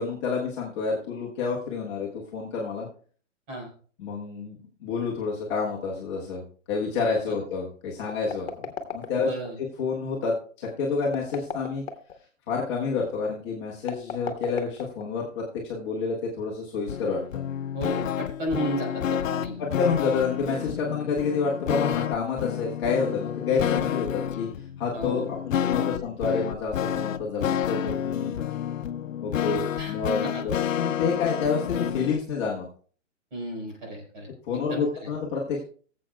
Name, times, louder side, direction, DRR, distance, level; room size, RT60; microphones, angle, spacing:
voice 1, 0.0-2.9 4.0-6.4 6.7-9.3 9.6-11.8 12.5-17.4 19.6-24.5 24.8-28.4 29.2-32.6 34.5-35.6, left 5 dB, 20° left, -3 dB, 1.3 m, -29 dB
sound 1, 8.0-9.5 11.0-12.2 13.8-15.3, left 6 dB, 55° left, 1.3 m, -36 dB
voice 2, 9.1-9.5 17.7-19.5 24.9-25.3 29.8-29.9 30.2-30.4 33.3-34.9, right 1 dB, 40° right, 0 dB, 4.6 m, -33 dB
sound 2, 16.9-32.2, left 9 dB, 85° left, 0.7 m, -29 dB
21.0 x 7.5 x 2.3 m, 0.43 s
hypercardioid pair, 170°, 38 cm